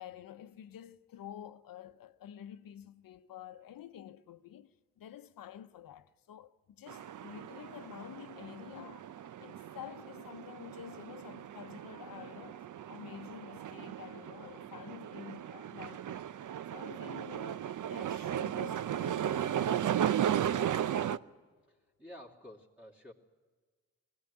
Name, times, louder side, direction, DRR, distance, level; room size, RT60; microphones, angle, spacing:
voice 1, 0.0-9.1 9.4-12.6 12.9-16.2 16.7-20.5, left 10 dB, 65° left, 0.9 m, -49 dB
sound 1, 6.9-21.2, right 10 dB, 55° right, 0.6 m, -36 dB
voice 2, 21.7-23.1, left 1 dB, 5° right, 2.9 m, -51 dB
21.0 x 16.5 x 9.8 m
supercardioid pair, 50°, 36 cm